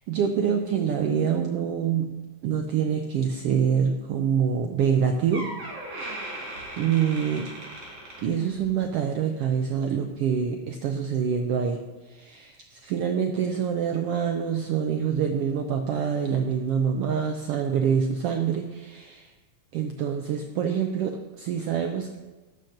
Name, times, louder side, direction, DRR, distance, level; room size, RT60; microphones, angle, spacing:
voice 1, 0.1-2.1 2.4-5.4 6.8-7.5 8.2-11.8 12.0-19.3 19.7-22.2, right 7 dB, 80° right, 5 dB, 1.3 m, -26 dB
Door, 4.9-5.0 5.3-8.8 9.2-9.5 10.2-10.3, right 1 dB, 55° right, 4.5 m, -38 dB
12.0 x 5.9 x 6.4 m, 1.2 s
omnidirectional pair, 3.4 m